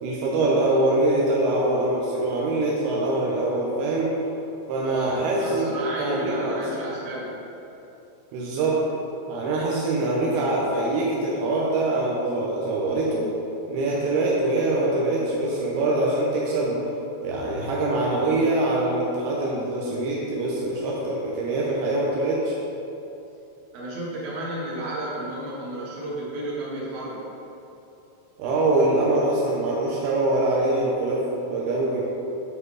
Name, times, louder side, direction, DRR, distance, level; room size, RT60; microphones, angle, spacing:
voice 1, 0.0-4.2 4.7-5.7 6.0-6.7 8.3-8.9 9.3-13.3 13.7-16.8 17.2-22.6 28.4-32.0, right 2 dB, 75° right, -4 dB, 2.3 m, -24 dB
voice 2, 4.8-7.3 23.7-27.3, right 1 dB, 60° right, -6 dB, 3.1 m, -32 dB
9.9 x 5.2 x 4.7 m, 2.9 s
omnidirectional pair, 5.6 m